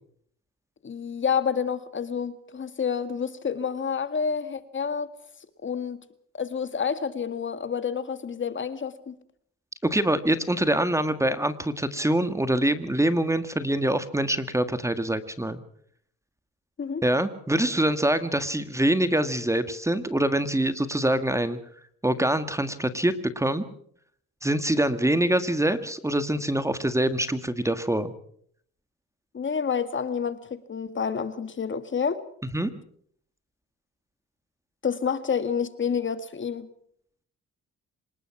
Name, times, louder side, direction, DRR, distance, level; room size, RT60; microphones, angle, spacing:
voice 1, 0.8-5.1 5.6-6.0 6.3-9.1 16.8-17.0 29.3-32.2 34.8-36.7, left 6 dB, 40° left, 11 dB, 2.0 m, -29 dB
voice 2, 9.8-15.6 17.0-21.6 22.0-23.7 24.4-28.1 32.5-32.7, right 1 dB, 10° right, 11 dB, 1.7 m, -24 dB
26.0 x 19.5 x 6.0 m, 0.63 s
cardioid pair, 90°, 30 cm